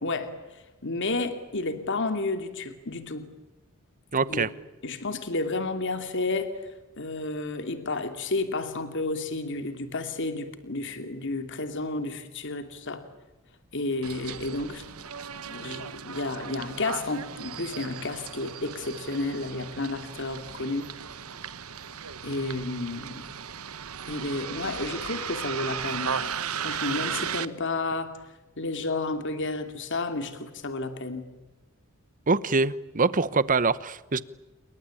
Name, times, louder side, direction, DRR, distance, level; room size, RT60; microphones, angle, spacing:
voice 1, 0.0-3.3 4.3-4.4 4.8-6.5 7.0-13.0 13.7-14.8 15.4-20.9 22.2-23.2 24.1-26.3 26.6-28.1 28.6-31.3, left 2 dB, 60° left, 8 dB, 2.8 m, -31 dB
voice 2, 4.1-4.5 32.3-34.2, right 4 dB, 40° right, 17 dB, 1.0 m, -24 dB
Bus, 14.0-27.5, right 7 dB, 85° right, 1.3 m, -36 dB
29.0 x 24.0 x 8.6 m, 1.1 s
head